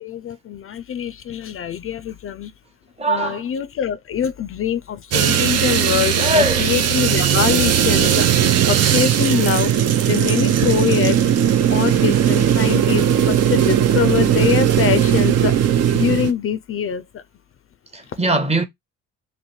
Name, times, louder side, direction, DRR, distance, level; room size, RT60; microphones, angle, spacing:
voice 1, 0.0-2.5 3.1-6.3 6.6-8.3 8.7-9.7 10.1-11.2 11.7-15.6 15.9-17.2, left 9 dB, 45° left, 0.4 m, -23 dB
voice 2, 3.0-3.5 6.2-6.7 8.0-8.1 12.6-13.1 17.9-18.7, right 1 dB, 20° right, 0.8 m, -22 dB
sound 1, 5.1-16.3, right 10 dB, 55° right, 0.6 m, -17 dB
3.2 x 2.6 x 4.1 m
cardioid pair, 90°, 30 cm